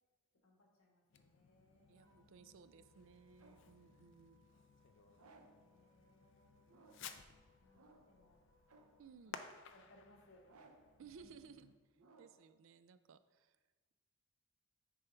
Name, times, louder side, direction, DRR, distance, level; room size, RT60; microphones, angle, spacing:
voice 1, 0.4-2.4 4.8-5.1 5.3-6.7 7.6-8.4 9.4-10.4 11.0-11.5, left 1 dB, 75° left, -1 dB, 1.6 m, -68 dB
Fireworks, 1.1-11.8, left 6 dB, 60° left, 0.4 m, -58 dB
sound 1, 1.7-3.8 5.1-5.7 6.7-7.2 7.7-8.3 8.7-9.1 10.4-11.0 12.0-12.5, right 3 dB, 90° right, 0.8 m, -66 dB
voice 2, 1.9-4.4 9.0-9.4 11.0-11.7 12.2-13.6, right 6 dB, 65° right, 13 dB, 0.4 m, -59 dB
sound 2, 2.0-9.1, left 1 dB, 15° left, 0.9 m, -76 dB
9.9 x 3.5 x 4.4 m, 1.3 s
head